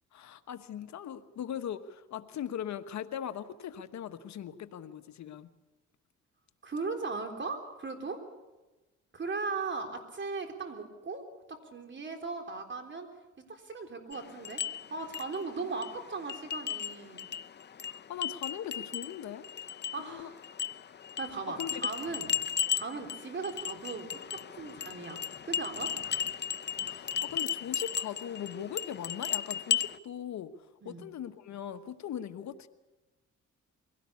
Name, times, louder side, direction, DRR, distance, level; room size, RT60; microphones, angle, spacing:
voice 1, 0.1-5.5 17.9-20.3 21.6-21.9 26.8-32.7, left 9 dB, 65° left, 10 dB, 1.2 m, -40 dB
voice 2, 6.6-8.2 9.1-11.2 11.5-13.1 13.5-14.6 14.9-17.3 19.9-20.3 21.2-22.3 22.7-25.2 25.5-25.9 30.8-31.0, right 4 dB, 40° right, 5 dB, 3.7 m, -38 dB
sound 1, 14.1-30.0, left 8 dB, 35° left, 0.7 m, -36 dB
23.0 x 17.5 x 8.5 m, 1.1 s
cardioid pair, 90°, 30 cm